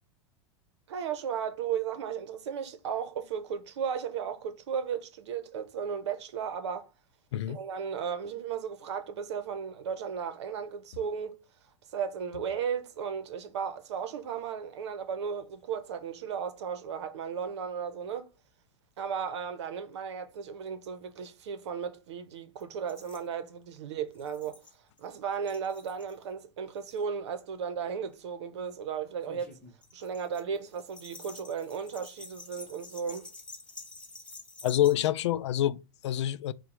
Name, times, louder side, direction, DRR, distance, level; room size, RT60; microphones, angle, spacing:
voice 1, 0.9-6.9 7.5-11.4 11.9-18.3 19.0-24.6 25.0-29.5 29.9-33.3, right 7 dB, 80° right, 0.9 m, -35 dB
voice 2, 7.3-7.6 34.6-36.5, left 12 dB, 85° left, 0.4 m, -27 dB
sound 1, 22.6-22.7 22.9-23.3 24.1-25.0 25.3-26.1 26.8-27.0 27.9-28.1 29.2-34.9, left 3 dB, 5° left, 1.0 m, -49 dB
5.1 x 2.3 x 4.4 m
supercardioid pair, 150°, 14 cm